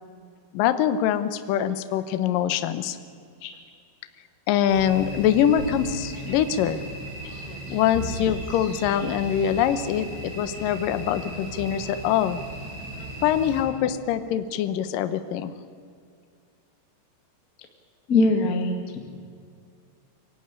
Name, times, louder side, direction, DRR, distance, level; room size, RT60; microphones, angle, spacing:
voice 1, 0.5-3.0 4.5-6.8 7.7-12.4 13.2-15.5, left 10 dB, 75° left, 11 dB, 2.0 m, -24 dB
sound 1, 4.7-13.6, right 2 dB, 55° right, 8.3 m, -36 dB
voice 2, 18.1-19.0, left 2 dB, 45° left, 4 dB, 1.1 m, -22 dB
24.5 x 18.0 x 9.9 m, 2.2 s
omnidirectional pair, 5.2 m